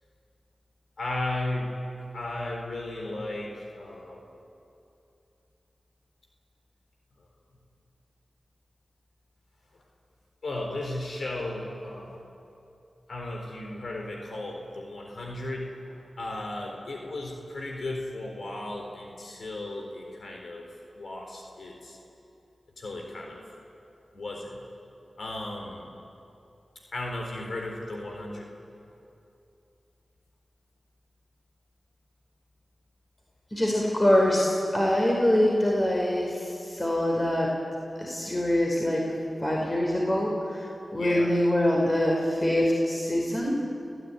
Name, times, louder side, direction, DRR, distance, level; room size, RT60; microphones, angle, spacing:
voice 1, 1.0-1.7 2.1-4.3 10.4-12.2 13.1-20.7 20.9-22.0 22.8-23.4 24.1-24.6 25.2-25.9 26.9-28.5 41.0-41.3, left 2 dB, 70° left, 0 dB, 4.1 m, -35 dB
voice 2, 33.5-37.5 38.0-39.1 39.4-43.5, left 1 dB, 30° left, -2 dB, 5.1 m, -24 dB
29.5 x 15.5 x 9.6 m, 2.8 s
cardioid pair, 40°, 0 cm